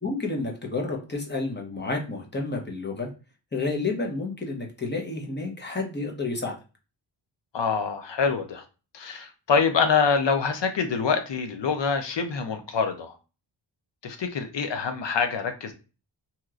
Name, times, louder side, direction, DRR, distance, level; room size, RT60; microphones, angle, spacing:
voice 1, 0.0-3.1 3.5-6.5, left 3 dB, 25° left, 1 dB, 0.8 m, -30 dB
voice 2, 7.5-8.6 8.9-13.2 14.0-15.7, left 5 dB, 70° left, 7 dB, 0.6 m, -25 dB
2.9 x 2.9 x 2.4 m, 0.32 s
wide cardioid pair, 105°, 46 cm